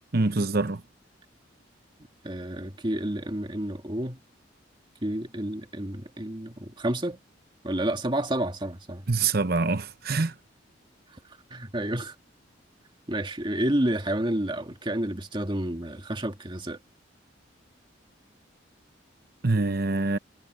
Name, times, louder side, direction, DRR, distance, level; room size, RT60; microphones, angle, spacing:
voice 1, 0.1-0.8 9.1-10.3 19.4-20.2, right 3 dB, 55° right, 0.9 m, -25 dB
voice 2, 2.2-4.2 5.0-7.2 7.6-9.0 11.5-12.1 13.1-16.8, right 1 dB, 25° right, 2.0 m, -30 dB
head